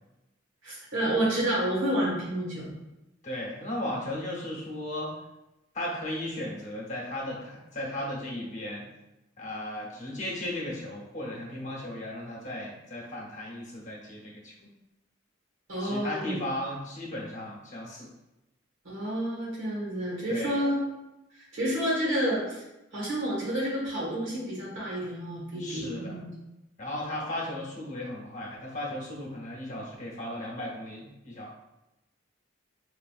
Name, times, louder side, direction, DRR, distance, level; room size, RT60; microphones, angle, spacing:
voice 1, 0.6-2.7 15.7-16.4 18.8-20.8 21.3-22.6 22.9-26.3, right 1 dB, 80° right, -5 dB, 1.4 m, -29 dB
voice 2, 3.2-5.1 5.7-8.9 9.4-14.7 15.8-18.1 20.3-20.6 25.6-26.2 26.8-31.6, left 1 dB, 40° left, -3 dB, 0.9 m, -36 dB
4.6 x 2.5 x 2.4 m, 0.95 s
head